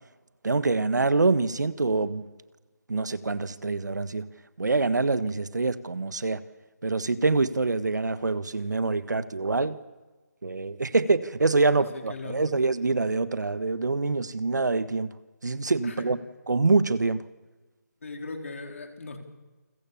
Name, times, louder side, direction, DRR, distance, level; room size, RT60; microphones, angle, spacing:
voice 1, 0.4-2.2 2.9-4.3 4.6-6.4 6.8-9.8 10.4-15.1 15.4-16.2 16.5-17.2, right 3 dB, 80° right, 13 dB, 1.5 m, -25 dB
voice 2, 11.7-12.5 15.8-16.1 18.0-19.2, left 3 dB, 50° left, 4 dB, 4.1 m, -39 dB
29.0 x 22.0 x 7.3 m, 1.2 s
figure-of-eight pair, 175°, 10 cm